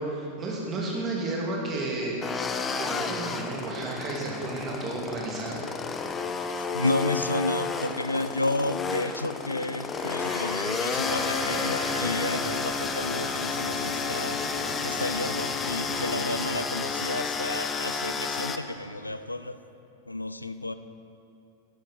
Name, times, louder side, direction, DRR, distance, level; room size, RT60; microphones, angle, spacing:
voice 1, 0.0-2.2 2.7-5.6, right 2 dB, 25° right, -2 dB, 2.4 m, -32 dB
sound 1, 2.2-18.6, left 5 dB, 20° left, 0.6 m, -31 dB
voice 2, 6.7-14.4 14.8-19.6 20.1-20.7, left 2 dB, 85° left, 11 dB, 0.4 m, -31 dB
sound 2, 9.9-12.2, equal, 85° right, 2.2 m, -36 dB
sound 3, 10.9-16.5, left 2 dB, 70° left, 1.6 m, -38 dB
11.5 x 10.5 x 4.3 m, 2.8 s
figure-of-eight pair, 90°, 0 cm